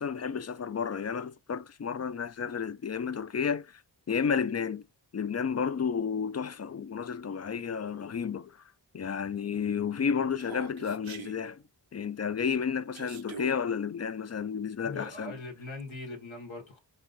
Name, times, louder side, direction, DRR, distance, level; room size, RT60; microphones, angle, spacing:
voice 1, 0.0-3.8 4.1-4.8 5.1-8.6 8.9-11.6 11.9-15.3, left 6 dB, 35° left, 0.4 m, -31 dB
Human voice, 10.4-11.4 12.9-13.6, right 7 dB, 85° right, 0.8 m, -44 dB
voice 2, 14.8-16.8, left 2 dB, 85° left, 1.2 m, -41 dB
4.2 x 2.6 x 3.9 m
cardioid pair, 40°, 46 cm